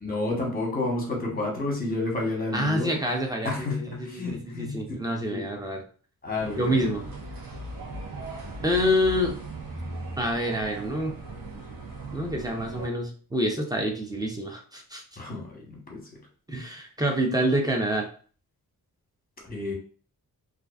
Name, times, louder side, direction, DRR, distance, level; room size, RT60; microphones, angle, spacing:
voice 1, 0.0-3.0 3.4-4.8 5.3-5.4 6.2-6.9 15.2-16.0 19.5-19.7, left 2 dB, 25° left, -1 dB, 0.9 m, -30 dB
voice 2, 2.5-5.8 6.6-7.0 8.6-9.4 10.2-11.1 12.1-15.0 16.5-18.1, equal, 10° right, 1 dB, 0.5 m, -27 dB
sound 1, 6.3-12.9, right 2 dB, 65° right, 0.8 m, -38 dB
2.4 x 2.3 x 2.3 m, 0.42 s
wide cardioid pair, 100°, 37 cm